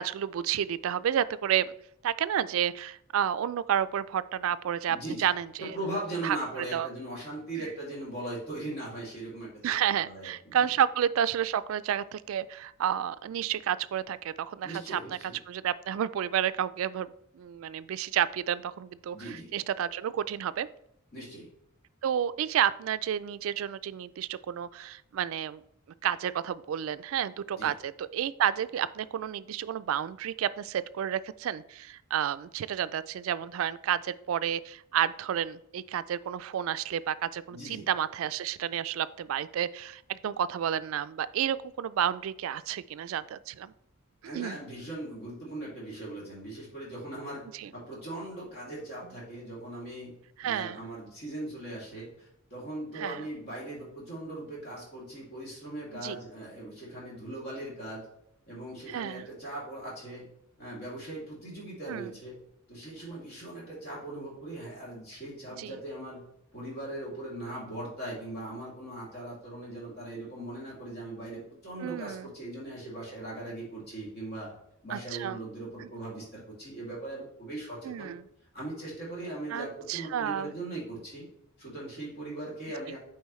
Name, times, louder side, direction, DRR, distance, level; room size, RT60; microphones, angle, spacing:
voice 1, 0.0-1.7 2.0-5.7 6.2-6.9 9.6-15.0 15.5-20.7 22.0-25.6 26.0-43.7 44.3-44.6 47.6-47.7 50.4-50.8 53.0-53.2 55.9-56.2 58.9-59.3 61.9-62.1 65.6-65.7 71.8-72.3 74.9-75.4 75.8-75.9 77.8-78.2 79.5-80.5, right 9 dB, 70° right, 16 dB, 0.3 m, -31 dB
voice 2, 4.9-5.3 5.6-10.7 14.6-15.4 19.1-19.5 21.1-21.5 27.5-27.7 37.5-37.9 44.2-47.4 47.7-50.1 50.4-58.0 58.5-60.2 60.6-62.3 62.7-66.2 66.5-74.5 74.8-78.1 78.5-81.3 81.6-83.0, right 1 dB, 50° left, -5 dB, 2.6 m, -39 dB
8.1 x 4.6 x 3.1 m, 0.75 s
head